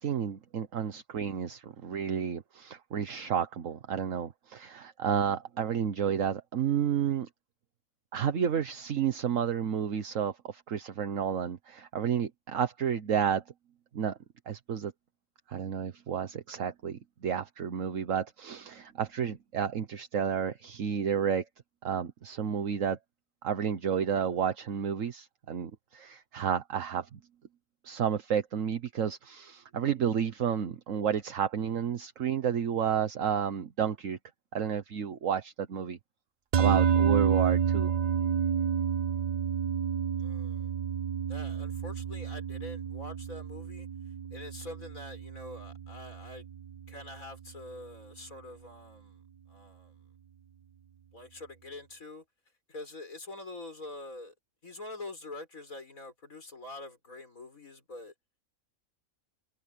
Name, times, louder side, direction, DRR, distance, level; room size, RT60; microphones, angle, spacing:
voice 1, 0.0-7.3 8.1-13.4 13.9-14.2 14.5-14.9 15.5-21.5 21.8-23.0 23.4-27.2 27.8-34.2 34.5-36.0 36.6-37.9, right 8 dB, 70° right, 1.4 m, -31 dB
sound 1, 36.5-47.0, right 7 dB, 55° right, 0.4 m, -30 dB
voice 2, 40.2-40.7 41.3-43.9 44.3-46.5 46.9-49.2 49.5-49.9 51.1-52.2 52.7-54.3 54.6-58.1, left 2 dB, 90° left, 5.9 m, -45 dB
omnidirectional pair, 1.4 m